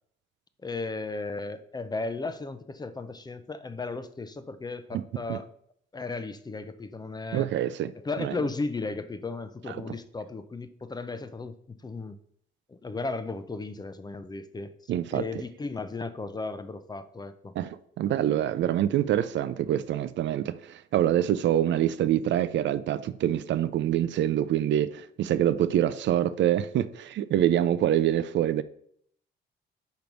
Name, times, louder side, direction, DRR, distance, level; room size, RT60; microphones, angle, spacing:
voice 1, 0.6-5.5 5.9-7.5 8.0-12.2 12.7-14.7 15.1-17.5, left 3 dB, 20° left, 0.5 m, -35 dB
voice 2, 7.3-7.9 8.2-8.3 14.9-15.2 17.6-28.6, right 11 dB, 65° right, 0.5 m, -25 dB
5.1 x 4.6 x 5.2 m
cardioid pair, 90°, 20 cm